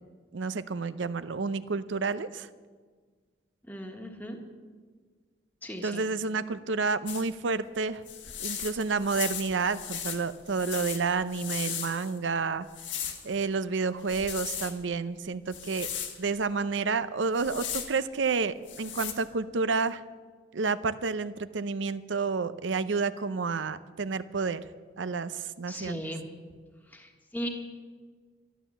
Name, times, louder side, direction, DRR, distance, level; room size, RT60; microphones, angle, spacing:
voice 1, 0.3-2.5 5.8-8.0 8.4-12.7 13.2-15.9 16.2-20.0 20.5-24.6 25.0-26.0, right 4 dB, 85° right, 13 dB, 0.6 m, -30 dB
voice 2, 3.7-4.4 5.6-6.1 25.7-26.2 26.9-27.5, equal, 10° left, 2 dB, 1.4 m, -37 dB
sound 1, 7.1-7.3 8.1-12.2 12.7-13.3 14.0-14.7 15.5-16.2 17.2-17.9 18.7-19.1, left 8 dB, 85° left, 1.6 m, -37 dB
12.5 x 12.0 x 7.2 m, 1.5 s
head